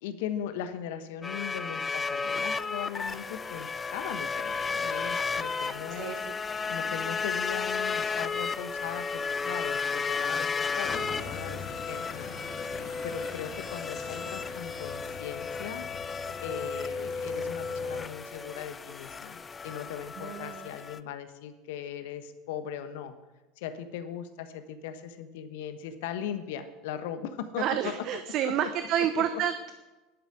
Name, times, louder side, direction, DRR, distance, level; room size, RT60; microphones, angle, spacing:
voice 1, 0.0-6.4 6.7-15.9 16.4-23.1 23.6-28.5 29.2-29.3, left 9 dB, 65° left, 10 dB, 1.2 m, -39 dB
sound 1, 1.2-21.0, left 5 dB, 25° left, 0.6 m, -33 dB
sound 2, 10.8-18.1, left 5 dB, 40° left, 2.2 m, -43 dB
voice 2, 20.2-20.7 27.6-29.7, right 9 dB, 50° right, 9 dB, 0.8 m, -30 dB
11.5 x 8.7 x 7.6 m, 1.1 s
figure-of-eight pair, 70°, 0 cm